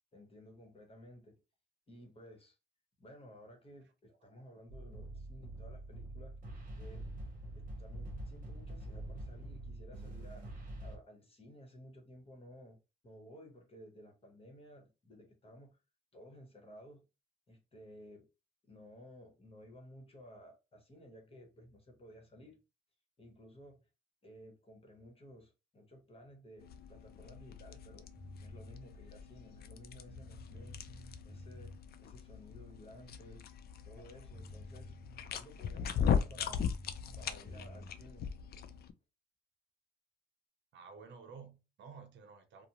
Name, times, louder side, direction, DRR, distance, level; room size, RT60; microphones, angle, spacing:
voice 1, 0.1-1.4 1.9-2.6 3.0-6.4 6.8-7.1 7.5-10.5 10.8-12.8 13.0-15.8 16.1-17.0 17.5-18.3 18.6-22.6 23.2-23.9 24.2-28.1 28.4-30.8 31.2-33.5 33.8-34.9 35.3-36.7 37.1-38.3, equal, 30° left, 1.1 m, -55 dB
sound 1, 4.7-11.0, right 1 dB, 45° right, 1.0 m, -45 dB
sound 2, 26.6-38.9, left 7 dB, 55° left, 0.4 m, -39 dB
sound 3, 28.2-28.7 29.7-29.8 30.1-31.8 33.9-34.0 34.3-35.5 36.2-37.9, left 1 dB, ahead, 0.5 m, -52 dB
voice 2, 40.7-42.7, right 5 dB, 65° right, 0.7 m, -52 dB
2.5 x 2.0 x 2.9 m
cardioid pair, 90°, 20 cm